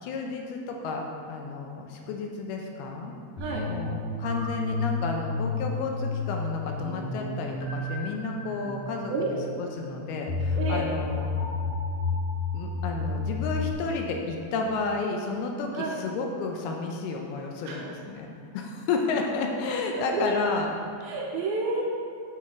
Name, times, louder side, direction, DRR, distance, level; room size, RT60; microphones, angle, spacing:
voice 1, 0.0-3.1 3.7-9.1 9.6-11.3 12.5-20.7, left 4 dB, 80° left, 2 dB, 2.5 m, -31 dB
sound 1, 3.4-13.7, left 3 dB, 55° left, 2.3 m, -31 dB
voice 2, 3.4-3.7 9.1-9.4 10.6-10.9 15.7-16.0 17.6-17.9 20.0-20.4 21.0-21.8, right 3 dB, 75° right, -1 dB, 2.4 m, -30 dB
7.4 x 6.9 x 4.7 m, 2.3 s
omnidirectional pair, 4.8 m